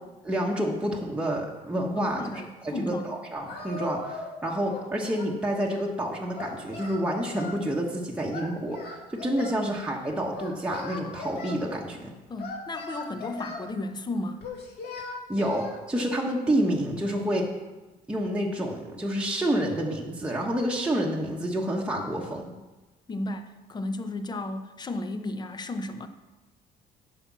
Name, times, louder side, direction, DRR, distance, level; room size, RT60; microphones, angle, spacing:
voice 1, 0.2-2.2 2.6-12.1 15.3-17.5 18.1-22.4, right 1 dB, 5° right, -2 dB, 1.2 m, -28 dB
voice 2, 1.9-3.1 12.3-14.4 23.1-26.1, left 2 dB, 25° left, 9 dB, 0.8 m, -34 dB
Singing, 3.5-4.4 4.7-5.9 6.3-7.6 8.3-9.6 10.3-11.6 12.4-13.7 14.4-15.7, left 3 dB, 70° left, 2.1 m, -39 dB
9.7 x 6.0 x 6.0 m, 1.1 s
cardioid pair, 110°, 17 cm